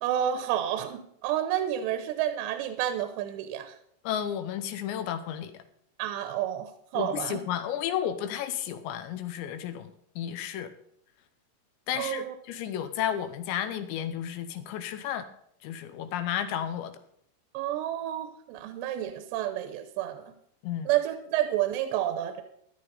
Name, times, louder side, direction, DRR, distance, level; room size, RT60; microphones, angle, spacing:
voice 1, 0.0-3.8 6.0-7.4 12.0-12.3 17.5-20.3 20.9-22.4, right 11 dB, 85° right, 8 dB, 2.9 m, -30 dB
voice 2, 4.0-5.6 6.9-10.7 11.9-15.3 15.6-16.9 20.6-20.9, left 10 dB, 85° left, 10 dB, 3.1 m, -32 dB
13.5 x 11.0 x 4.0 m, 0.70 s
omnidirectional pair, 5.1 m